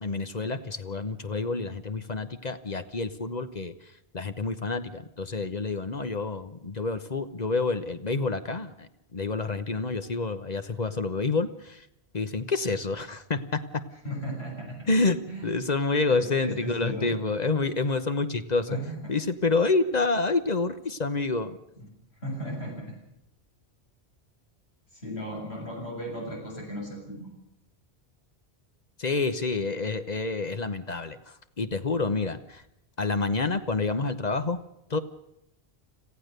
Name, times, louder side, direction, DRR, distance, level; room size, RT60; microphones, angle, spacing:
voice 1, 0.0-3.7 4.1-11.9 12.1-13.8 14.9-18.7 19.1-21.6 29.0-32.6 33.0-34.6 34.9-35.0, left 3 dB, 40° left, 10 dB, 1.1 m, -28 dB
voice 2, 14.0-14.9 15.3-15.5 16.1-17.2 18.7-19.1 21.8-21.9 22.2-22.9 24.9-27.3, equal, 75° left, -1 dB, 7.4 m, -36 dB
26.0 x 15.5 x 6.7 m, 0.80 s
omnidirectional pair, 1.1 m